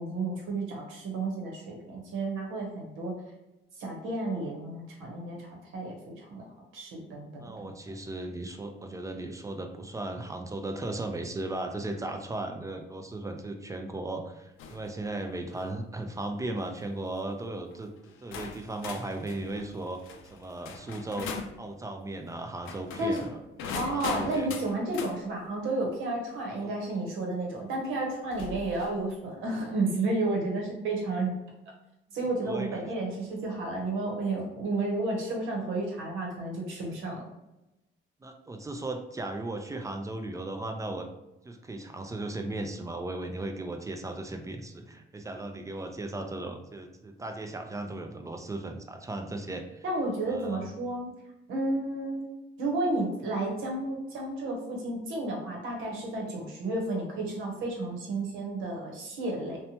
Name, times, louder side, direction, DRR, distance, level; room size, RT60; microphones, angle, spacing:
voice 1, 0.0-3.1 3.8-6.4 6.7-7.7 23.0-23.2 23.7-31.3 32.1-37.2 49.8-51.1 51.5-52.2 52.6-59.6, right 2 dB, 90° right, -1 dB, 0.8 m, -32 dB
voice 2, 7.3-20.0 20.3-21.3 21.6-24.5 26.6-26.7 32.5-32.8 38.2-41.1 41.4-49.8 50.3-50.6, right 2 dB, 15° right, 5 dB, 0.3 m, -36 dB
sound 1, 14.6-14.9 15.4-15.7 16.6-16.9 17.7-17.8 18.3-21.6 22.6-25.2 26.9-27.0 28.3-29.0, left 5 dB, 85° left, 0.4 m, -40 dB
2.7 x 2.1 x 2.7 m, 0.95 s
cardioid pair, 90°, 20 cm